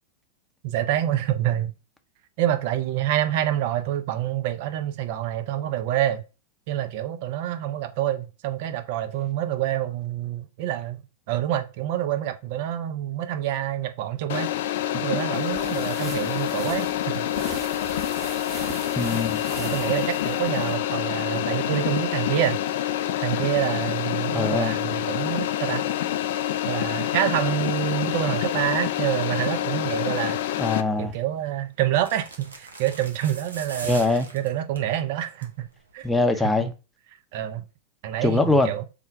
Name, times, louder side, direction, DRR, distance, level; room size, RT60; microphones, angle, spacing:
voice 1, 0.6-1.7 2.4-6.2 6.7-11.0 11.3-14.5 14.9-17.3 19.6-22.6 23.2-25.8 26.7-30.4 31.0-34.0 34.3-35.7 35.9-36.1 36.4-36.5 37.3-37.6 38.0-38.8, right 12 dB, 60° right, 0.6 m, -27 dB
sound 1, 14.3-30.8, left 12 dB, 65° left, 0.3 m, -27 dB
sound 2, 15.3-20.8, right 3 dB, 25° right, 0.9 m, -40 dB
voice 2, 19.0-19.4 24.3-24.7 30.6-31.1 33.9-34.3 36.0-36.7 38.2-38.7, left 2 dB, 5° left, 0.6 m, -22 dB
sound 3, 30.9-31.2 32.0-34.9 35.3-35.6 35.9-36.0, right 3 dB, 90° right, 0.8 m, -40 dB
3.6 x 2.2 x 4.4 m
hypercardioid pair, 100°, 0 cm